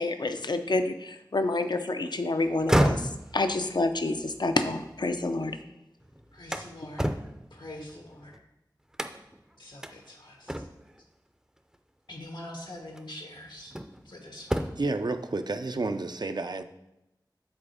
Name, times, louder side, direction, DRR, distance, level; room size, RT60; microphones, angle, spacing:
voice 1, 0.0-5.6, left 2 dB, 65° left, 8 dB, 0.6 m, -28 dB
sound 1, 2.5-5.6 6.0-8.4 8.9-9.4 9.8-9.9 10.5-11.0 12.2-12.4 12.9-14.1 14.4-15.0, equal, 10° right, 0.5 m, -31 dB
voice 2, 6.3-7.1 7.5-8.4 9.6-10.5 12.1-13.7 14.0-14.7, left 1 dB, 85° left, 1 dB, 1.4 m, -44 dB
voice 3, 14.8-16.6, right 3 dB, 65° right, 8 dB, 0.5 m, -30 dB
7.4 x 4.1 x 4.9 m, 0.91 s
wide cardioid pair, 50°, 8 cm